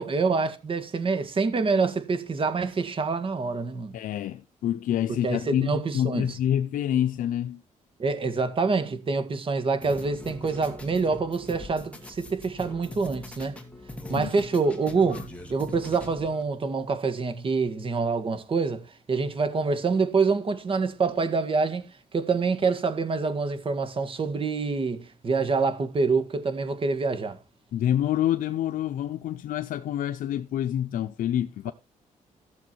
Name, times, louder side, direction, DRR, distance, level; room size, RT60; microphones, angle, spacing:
voice 1, 0.0-3.9 5.2-6.3 8.0-13.6 14.1-21.9 22.1-27.4, right 4 dB, 40° right, 1.8 m, -26 dB
voice 2, 3.9-7.6 14.2-14.3 15.1-15.2 27.7-31.7, left 11 dB, 80° left, 0.6 m, -27 dB
sound 1, 9.8-16.4, left 1 dB, 10° left, 2.4 m, -41 dB
14.5 x 7.1 x 4.5 m
cardioid pair, 115°, 14 cm